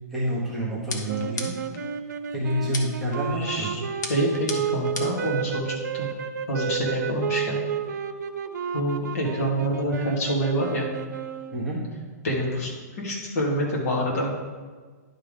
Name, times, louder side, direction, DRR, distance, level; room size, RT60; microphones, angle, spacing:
voice 1, 0.1-1.5 2.3-3.7 11.5-11.8, right 1 dB, ahead, -7 dB, 1.2 m, -28 dB
sound 1, 0.9-1.8 2.7-3.2 4.0-5.3, left 4 dB, 80° left, 1.2 m, -35 dB
sound 2, 1.1-11.8, right 7 dB, 90° right, 0.7 m, -32 dB
voice 2, 3.3-3.8 4.1-6.1 6.5-7.6 8.7-10.9 12.2-14.3, equal, 55° left, -2 dB, 2.4 m, -27 dB
10.5 x 3.8 x 5.2 m, 1.5 s
hypercardioid pair, 170°, 9 cm